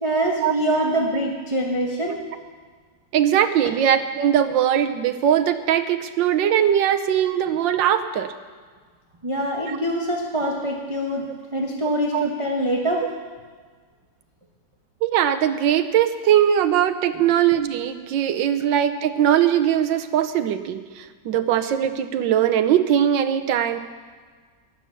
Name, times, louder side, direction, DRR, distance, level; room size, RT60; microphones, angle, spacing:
voice 1, 0.0-2.2 9.2-13.1, right 1 dB, 20° right, -1 dB, 1.0 m, -24 dB
voice 2, 3.1-8.3 9.7-9.8 12.1-12.3 15.0-23.8, right 10 dB, 85° right, 8 dB, 1.5 m, -20 dB
19.5 x 7.0 x 6.9 m, 1.5 s
omnidirectional pair, 2.0 m